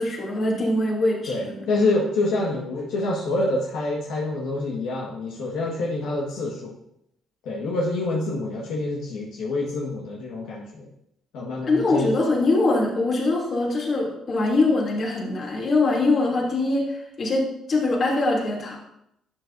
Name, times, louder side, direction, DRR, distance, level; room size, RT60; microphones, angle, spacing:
voice 1, 0.0-1.6 11.7-16.9 17.2-18.8, left 2 dB, 45° left, -2 dB, 2.8 m, -23 dB
voice 2, 1.3-6.7 7.4-10.8 11.3-12.1, left 2 dB, 85° left, -3 dB, 1.6 m, -26 dB
11.5 x 7.8 x 2.6 m, 0.79 s
cardioid pair, 105°, 0 cm